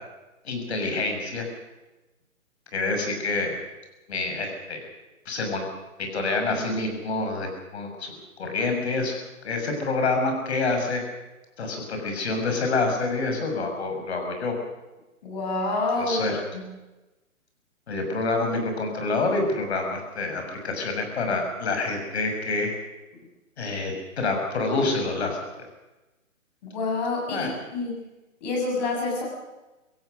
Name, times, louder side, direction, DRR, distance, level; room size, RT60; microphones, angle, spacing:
voice 1, 0.4-1.5 2.7-3.6 4.1-4.9 5.3-5.7 6.0-9.2 9.4-11.0 11.6-14.5 15.9-16.4 17.9-22.7 23.6-25.4 27.3-27.6, left 3 dB, 50° left, 4 dB, 6.1 m, -27 dB
voice 2, 15.2-16.7 26.6-28.0 28.4-29.3, left 2 dB, 30° left, -1 dB, 7.4 m, -28 dB
25.0 x 16.0 x 6.5 m, 1.1 s
hypercardioid pair, 160°, 41 cm